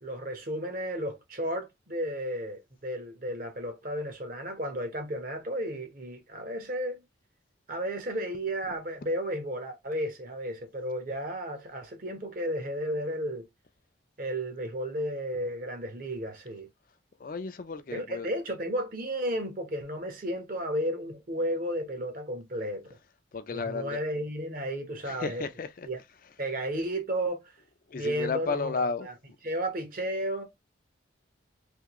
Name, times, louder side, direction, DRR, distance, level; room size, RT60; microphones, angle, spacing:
voice 1, 0.0-7.0 7.7-13.4 14.2-16.7 17.9-22.9 23.5-25.4 25.8-26.0 26.4-27.4 27.9-29.1 29.4-30.4, equal, 45° right, 1.0 m, -33 dB
voice 2, 17.2-18.3 23.3-24.0 25.0-25.9 27.9-29.1, left 4 dB, 45° left, 0.4 m, -33 dB
3.5 x 2.7 x 2.9 m
head